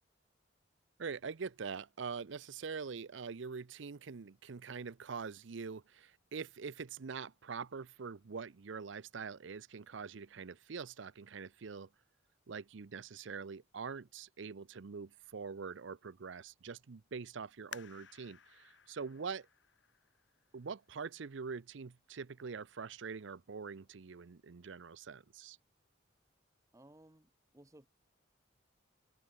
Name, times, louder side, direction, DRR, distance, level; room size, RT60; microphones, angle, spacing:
voice 1, 1.0-11.9 12.5-19.5 20.5-25.6, right 5 dB, 70° right, 0.6 m, -44 dB
sound 1, 17.7-21.1 21.7-21.8 22.4-22.8 23.2-23.3, left 7 dB, 70° left, 2.0 m, -55 dB
voice 2, 26.7-27.9, right 1 dB, 15° right, 0.9 m, -61 dB
head